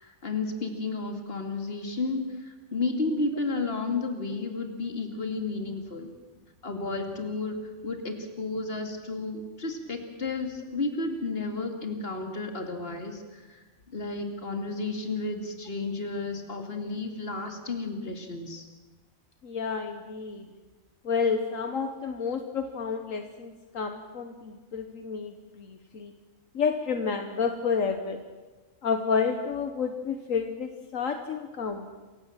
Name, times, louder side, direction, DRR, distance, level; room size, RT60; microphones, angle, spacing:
voice 1, 0.0-6.1 6.6-18.6, left 3 dB, 45° left, 4 dB, 2.7 m, -32 dB
voice 2, 19.4-20.5 21.0-26.1 26.5-28.2 28.8-31.9, left 5 dB, 75° left, 6 dB, 1.6 m, -30 dB
27.5 x 16.0 x 7.4 m, 1.3 s
omnidirectional pair, 1.4 m